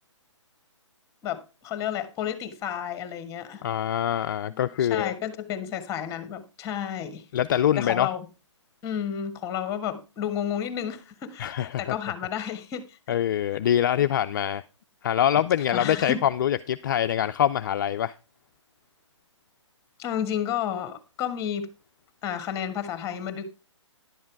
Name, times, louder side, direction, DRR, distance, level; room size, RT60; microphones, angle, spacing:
voice 1, 1.2-3.6 4.5-7.2 7.8-8.2 8.8-13.2 14.0-14.1 15.7-16.3 20.0-21.7 22.2-23.4, left 9 dB, 20° left, 1.5 m, -31 dB
voice 2, 3.6-5.1 7.3-8.1 11.4-11.9 13.1-14.6 15.0-18.1, left 10 dB, 40° left, 0.4 m, -24 dB
11.0 x 7.3 x 4.6 m
figure-of-eight pair, 140°, 16 cm